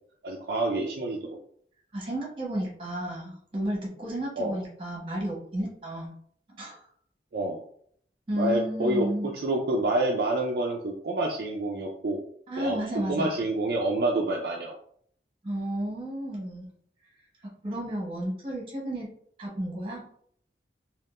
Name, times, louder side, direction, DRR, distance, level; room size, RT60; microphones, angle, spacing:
voice 1, 0.2-1.4 4.4-4.6 7.3-7.6 8.3-12.2 12.6-12.8 13.1-14.7, right 2 dB, 60° right, -1 dB, 0.4 m, -28 dB
voice 2, 1.9-6.1 6.6-6.9 8.3-9.3 12.5-13.4 15.4-16.7 17.6-19.1 19.4-20.0, right 1 dB, 30° right, -3 dB, 1.0 m, -32 dB
3.5 x 2.4 x 2.4 m, 0.63 s
head